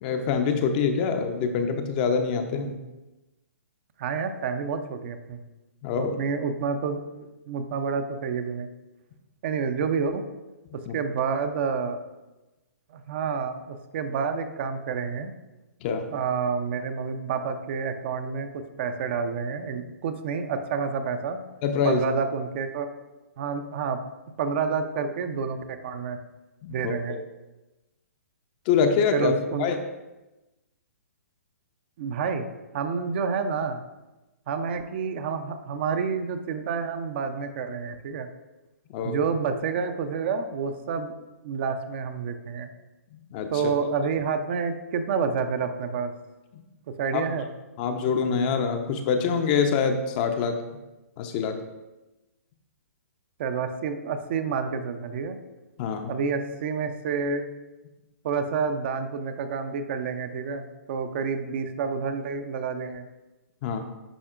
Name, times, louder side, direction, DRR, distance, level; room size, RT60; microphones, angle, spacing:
voice 1, 0.0-2.7 5.8-6.2 10.9-11.0 15.8-16.0 21.6-22.1 26.6-27.2 28.7-29.3 29.6-29.7 38.9-39.2 43.1-43.7 47.1-47.2 47.8-50.6 51.2-51.6 55.8-56.2 63.6-63.8, left 6 dB, 35° left, 6 dB, 0.6 m, -25 dB
voice 2, 4.0-5.4 6.0-8.7 9.4-10.2 10.7-12.0 12.9-15.3 16.1-21.4 21.8-22.9 23.4-24.0 24.4-26.2 26.7-27.2 29.1-29.7 32.0-32.5 32.7-33.8 34.5-38.3 39.0-41.1 41.4-42.7 43.5-46.1 46.9-47.5 53.4-55.4 56.1-57.5 58.2-63.1, right 5 dB, 45° right, 8 dB, 0.6 m, -29 dB
10.0 x 4.2 x 2.5 m, 1.0 s
figure-of-eight pair, 125°, 9 cm